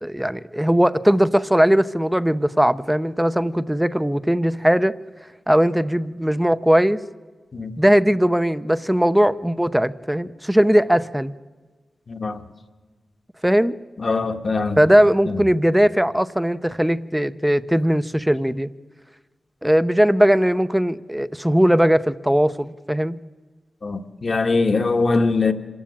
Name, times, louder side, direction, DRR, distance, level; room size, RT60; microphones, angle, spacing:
voice 1, 0.0-4.9 5.5-7.0 7.8-11.3 13.4-13.8 14.8-18.7 19.6-23.2, equal, 5° right, 0.8 m, -19 dB
voice 2, 12.1-12.4 14.0-14.8 15.3-15.4 23.8-25.5, left 3 dB, 55° left, 1.6 m, -22 dB
26.0 x 15.0 x 8.7 m
cardioid pair, 55°, 0 cm